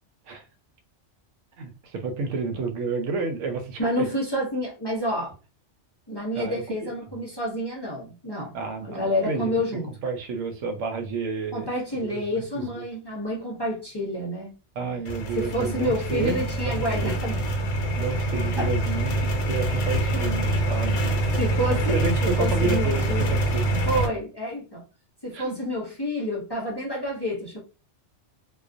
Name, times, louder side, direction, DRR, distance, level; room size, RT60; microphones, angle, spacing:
voice 1, 1.6-3.9 6.3-6.9 8.5-9.5 10.0-11.7 12.1-12.8 14.8-17.1 18.0-21.2 21.7-23.7 25.3-25.6, right 4 dB, 85° right, 0.9 m, -30 dB
voice 2, 3.8-5.3 6.1-8.6 8.8-9.9 11.5-14.5 15.3-17.4 18.6-18.7 21.4-23.4 23.8-24.8 25.2-27.6, equal, 30° left, 0.5 m, -29 dB
sound 1, 15.1-24.1, right 1 dB, 85° left, 1.0 m, -25 dB
2.4 x 2.1 x 2.5 m
omnidirectional pair, 1.2 m